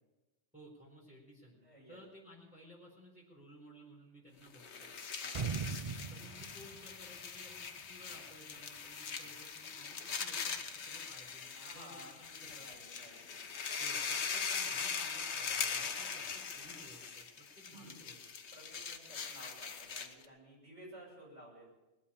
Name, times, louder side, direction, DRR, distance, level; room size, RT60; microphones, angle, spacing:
voice 1, 0.5-1.6 1.9-4.9 6.1-12.6 13.8-18.2, equal, 5° right, -6 dB, 4.6 m, -57 dB
voice 2, 1.6-2.0 5.2-5.4 11.2-13.2 17.7-18.0 18.5-21.7, right 1 dB, 90° right, -4 dB, 7.7 m, -55 dB
sound 1, 4.5-20.3, left 6 dB, 70° left, 1.3 m, -41 dB
sound 2, 5.3-8.2 8.5-8.6, right 5 dB, 35° right, 0.6 m, -40 dB
20.0 x 8.3 x 8.6 m, 1.1 s
omnidirectional pair, 1.2 m